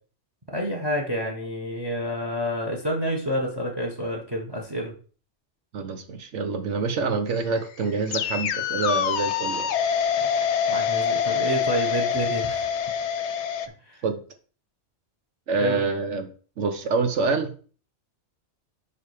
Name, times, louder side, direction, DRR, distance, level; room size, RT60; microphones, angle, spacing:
voice 1, 0.5-4.9 10.2-10.3 10.7-12.6 13.9-14.0 15.6-15.8, equal, 20° right, 2 dB, 1.2 m, -28 dB
voice 2, 5.7-9.7 14.0-14.2 15.5-16.3 16.6-17.5, right 4 dB, 85° right, 7 dB, 1.2 m, -26 dB
sound 1, 7.3-13.7, left 7 dB, 75° left, 0.9 m, -25 dB
5.0 x 4.9 x 4.8 m, 0.39 s
omnidirectional pair, 1.2 m